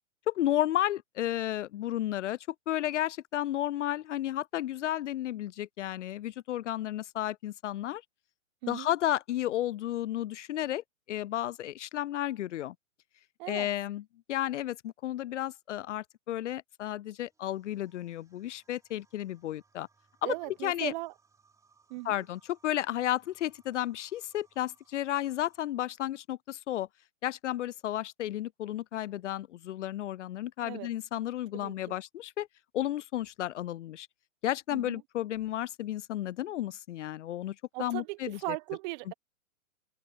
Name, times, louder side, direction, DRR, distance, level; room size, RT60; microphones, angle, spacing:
voice 1, 0.3-2.4 2.7-8.0 8.7-12.7 13.5-14.0 14.3-19.9 20.2-20.3 20.6-20.9 22.0-26.9 27.2-32.5 32.7-34.1 34.4-38.4 39.1-39.2, left 13 dB, 65° left, 0.5 m, -33 dB
sound 1, 17.2-25.6, right 4 dB, 10° right, 4.9 m, -69 dB
voice 2, 20.2-21.1 21.9-22.2 30.6-30.9 31.5-32.0 34.7-35.0 37.7-39.1, right 24 dB, 35° right, 1.3 m, -38 dB
hypercardioid pair, 130°, 39 cm